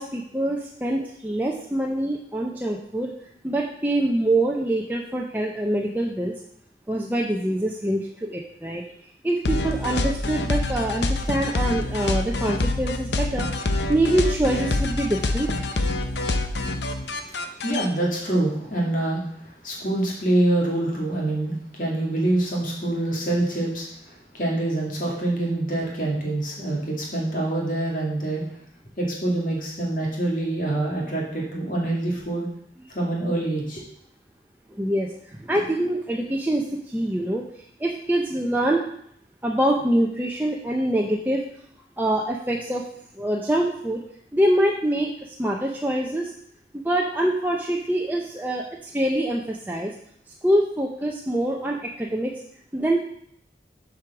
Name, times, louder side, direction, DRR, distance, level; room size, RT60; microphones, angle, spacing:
voice 1, 0.0-3.1 3.4-6.3 6.9-8.8 9.2-13.5 13.9-15.5 34.7-38.9 39.4-41.5 42.0-42.8 43.2-44.0 44.3-46.3 46.7-49.9 50.4-52.3 52.7-53.0, right 1 dB, 10° right, -1 dB, 0.7 m, -25 dB
sound 1, 9.4-17.9, left 2 dB, 85° left, 0.8 m, -26 dB
voice 2, 17.2-28.4 29.0-32.5 32.9-33.8, right 1 dB, 50° left, -2 dB, 2.3 m, -25 dB
8.1 x 4.9 x 6.0 m, 0.68 s
head